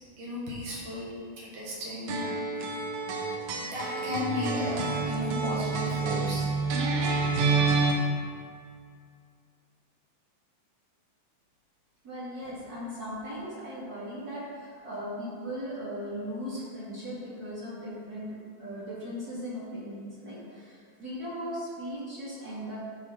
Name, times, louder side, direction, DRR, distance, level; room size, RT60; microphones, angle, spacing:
voice 1, 0.2-2.7 3.7-6.4, left 1 dB, 65° right, -6 dB, 3.0 m, -34 dB
sound 1, 2.1-7.9, right 4 dB, 90° right, 1.4 m, -28 dB
voice 2, 12.0-22.8, equal, 30° right, -9 dB, 2.0 m, -38 dB
10.5 x 4.0 x 4.5 m, 2.1 s
omnidirectional pair, 4.1 m